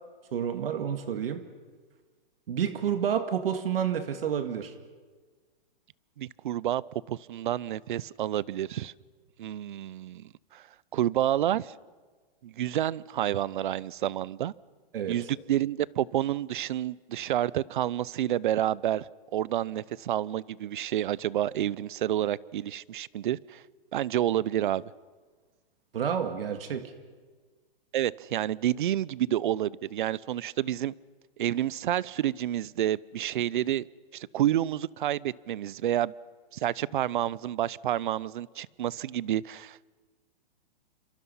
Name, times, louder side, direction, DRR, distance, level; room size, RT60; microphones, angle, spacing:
voice 1, 0.3-1.4 2.5-4.7 14.9-15.2 25.9-26.9, right 8 dB, 75° right, 8 dB, 2.1 m, -29 dB
voice 2, 6.2-8.9 9.4-10.6 10.9-11.7 12.4-14.5 15.1-23.6 23.9-24.8 27.9-30.9 31.4-33.8 34.1-36.1 36.5-39.8, right 12 dB, 60° right, 23 dB, 0.7 m, -29 dB
29.5 x 26.5 x 5.6 m, 1.5 s
hypercardioid pair, 170°, 29 cm